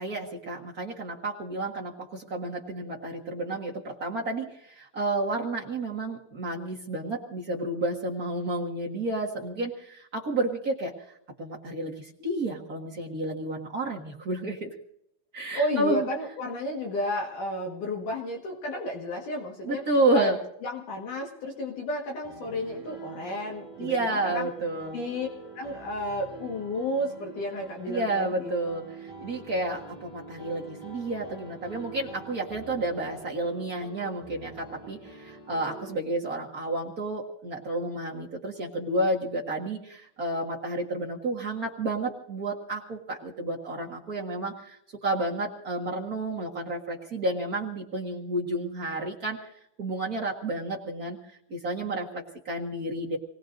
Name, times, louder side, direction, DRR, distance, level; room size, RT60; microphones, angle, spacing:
voice 1, 0.0-10.9 11.4-14.7 15.3-16.0 19.6-20.4 23.8-25.0 27.9-44.8 45.0-49.4 49.8-51.2 51.5-53.2, right 2 dB, 60° right, -2 dB, 0.9 m, -31 dB
voice 2, 15.5-19.8 20.1-20.3 20.6-24.5 24.9-25.3 25.6-28.5, left 1 dB, 60° left, 0 dB, 3.0 m, -32 dB
Piano, 22.2-35.9, right 3 dB, 10° left, 7.2 m, -46 dB
28.0 x 18.5 x 2.6 m, 0.75 s
omnidirectional pair, 4.5 m